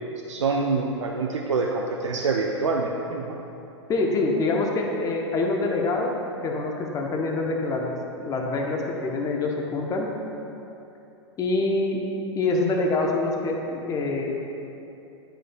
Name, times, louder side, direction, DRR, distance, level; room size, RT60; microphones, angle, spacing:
voice 1, 0.3-3.3, right 4 dB, 85° right, -1 dB, 0.5 m, -26 dB
voice 2, 3.9-6.1 6.4-10.1 11.4-12.1 12.3-14.3, left 3 dB, 25° left, 1 dB, 0.8 m, -25 dB
10.0 x 5.0 x 2.3 m, 2.9 s
hypercardioid pair, 105°, 15 cm